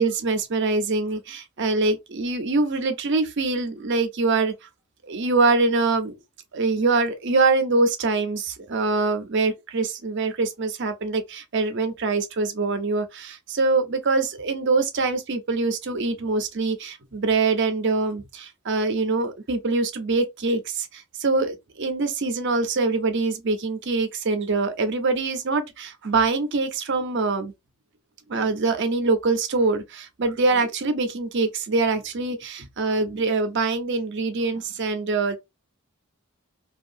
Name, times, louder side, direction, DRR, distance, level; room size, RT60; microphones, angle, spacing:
voice 1, 0.0-4.5 5.1-6.1 6.5-27.5 28.3-35.3, right 3 dB, 50° right, 0.6 m, -24 dB
2.7 x 2.3 x 2.6 m
head